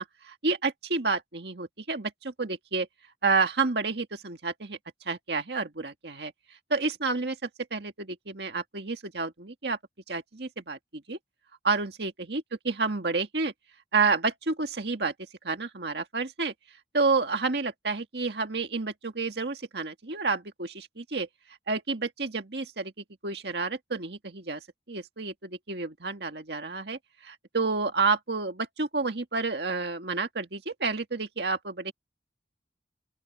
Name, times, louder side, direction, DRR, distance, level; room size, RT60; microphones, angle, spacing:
voice 1, 0.0-2.9 3.2-4.8 5.1-6.3 6.7-7.4 7.7-9.8 10.1-10.8 11.1-11.2 11.6-13.5 13.9-15.1 15.4-16.5 16.9-21.3 21.7-22.9 23.2-31.9, right 4 dB, 65° right, 1.9 m, -30 dB
open air
head